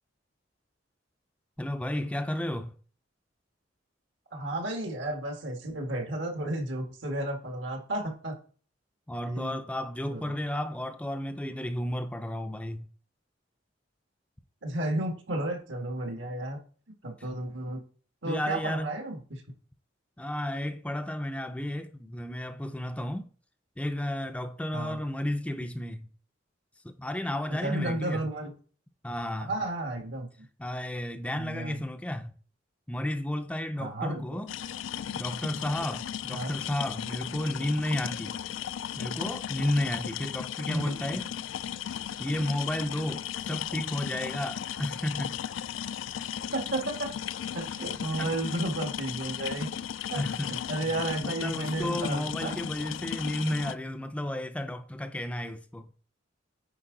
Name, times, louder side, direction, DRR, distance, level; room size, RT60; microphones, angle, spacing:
voice 1, 1.6-2.8 9.1-12.9 18.3-18.9 20.2-23.3 23.8-26.1 26.8-28.2 29.0-29.5 30.6-32.3 32.9-34.5 35.2-38.4 39.0-41.3 42.2-45.4 48.2-48.6 50.1-50.5 51.2-55.9, left 1 dB, 5° left, 0.4 m, -32 dB
voice 2, 4.3-8.4 9.2-9.6 10.1-10.3 14.6-16.6 17.0-17.8 18.2-19.4 24.7-25.0 27.6-28.5 29.4-30.3 31.3-31.8 33.8-34.2 36.3-36.5 40.7-41.2 46.5-47.1 47.5-49.7 50.1-52.5, right 1 dB, 80° right, 1.7 m, -33 dB
sound 1, 34.5-53.8, left 9 dB, 85° left, 0.3 m, -36 dB
8.8 x 4.6 x 3.8 m
head